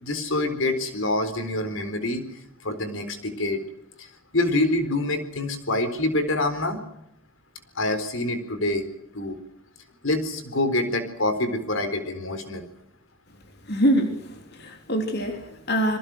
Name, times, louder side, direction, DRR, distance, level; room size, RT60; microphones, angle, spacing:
voice 1, 0.0-2.2 2.6-3.6 4.0-4.1 4.3-6.8 7.8-8.8 9.1-9.4 10.0-12.7, left 2 dB, 70° left, 10 dB, 4.1 m, -26 dB
voice 2, 13.7-16.0, equal, 50° left, 4 dB, 3.3 m, -24 dB
27.5 x 23.0 x 6.2 m, 0.80 s
head